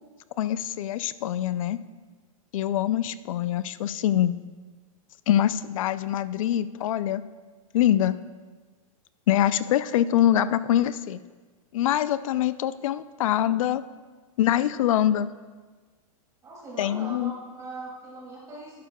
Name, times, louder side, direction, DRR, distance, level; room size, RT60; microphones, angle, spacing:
voice 1, 0.4-1.8 2.5-4.3 5.3-7.2 7.7-8.2 9.3-11.2 11.7-13.8 14.4-15.3 16.8-17.3, left 11 dB, 65° left, 15 dB, 0.5 m, -24 dB
voice 2, 16.4-18.8, right 2 dB, 15° right, -5 dB, 2.5 m, -40 dB
12.0 x 11.0 x 2.3 m, 1.4 s
supercardioid pair, 155°, 18 cm